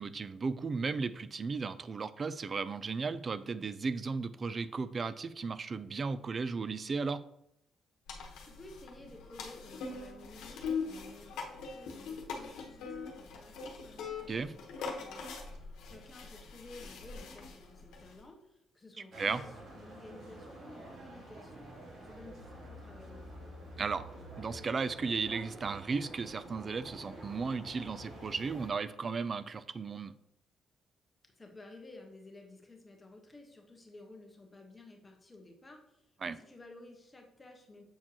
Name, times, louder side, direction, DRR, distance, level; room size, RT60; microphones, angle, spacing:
voice 1, 0.0-7.2 14.3-14.5 19.2-19.4 23.8-24.0 24.4-30.1 36.2-36.4, right 4 dB, 40° right, 15 dB, 0.4 m, -35 dB
sound 1, 8.1-18.2, left 5 dB, 85° left, 1.1 m, -42 dB
voice 2, 8.4-23.7 31.2-37.8, left 2 dB, 20° left, 2 dB, 1.2 m, -54 dB
sound 2, 19.1-28.7, right 1 dB, 60° right, 1.7 m, -49 dB
7.5 x 4.4 x 2.9 m, 0.78 s
cardioid pair, 90°, 0 cm